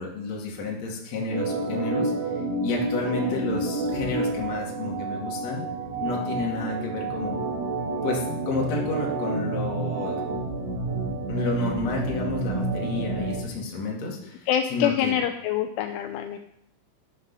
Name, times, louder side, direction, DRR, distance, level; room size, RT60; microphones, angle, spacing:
voice 1, 0.0-2.1 2.6-5.6 6.0-7.4 8.0-10.2 11.3-15.2, left 3 dB, 45° left, -2 dB, 2.6 m, -30 dB
Organ, 1.3-13.4, right 3 dB, 60° right, 3.4 m, -29 dB
voice 2, 3.0-3.4 14.5-16.4, left 10 dB, 80° left, 7 dB, 2.9 m, -26 dB
12.5 x 11.5 x 4.1 m, 0.74 s
omnidirectional pair, 5.8 m